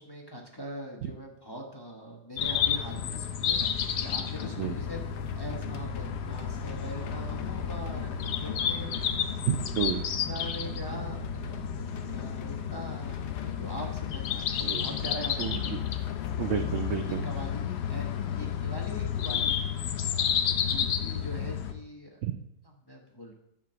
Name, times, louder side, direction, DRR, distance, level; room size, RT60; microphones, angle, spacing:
voice 1, 0.0-5.1 5.3-8.1 8.4-9.0 10.3-15.6 17.0-19.6 20.0-20.4 20.7-22.2 22.6-23.3, equal, 15° left, 0 dB, 0.9 m, -42 dB
sound 1, 2.4-21.7, left 8 dB, 80° left, 1.3 m, -31 dB
sound 2, 3.6-16.7, left 10 dB, 65° left, 0.7 m, -45 dB
voice 2, 9.5-10.1 14.6-14.9 15.4-15.8 16.4-17.2 22.2-22.3, right 9 dB, 70° right, 7 dB, 0.7 m, -30 dB
10.5 x 3.7 x 6.8 m, 0.82 s
omnidirectional pair, 1.8 m